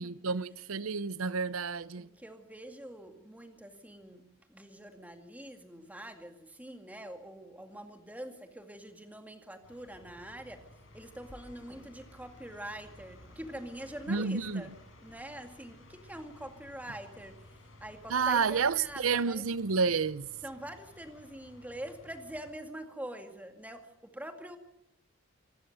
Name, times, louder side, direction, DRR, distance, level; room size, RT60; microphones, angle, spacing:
voice 1, 0.0-2.1 14.1-14.6 18.1-20.3, right 5 dB, 75° right, 0.7 m, -30 dB
voice 2, 1.9-4.2 4.5-10.6 10.9-14.7 15.0-19.4 20.4-24.6, right 1 dB, 5° right, 2.1 m, -45 dB
sound 1, 9.6-22.5, left 1 dB, 65° left, 5.3 m, -56 dB
26.5 x 14.0 x 7.8 m
head